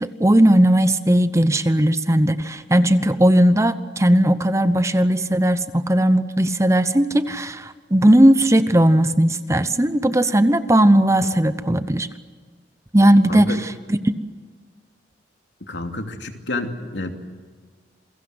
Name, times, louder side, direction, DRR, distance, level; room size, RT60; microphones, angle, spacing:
voice 1, 0.0-12.1 12.9-14.1, right 1 dB, 15° right, 13 dB, 0.9 m, -17 dB
voice 2, 15.7-17.1, left 2 dB, 75° left, 5 dB, 2.7 m, -29 dB
28.5 x 22.5 x 8.0 m, 1.5 s
head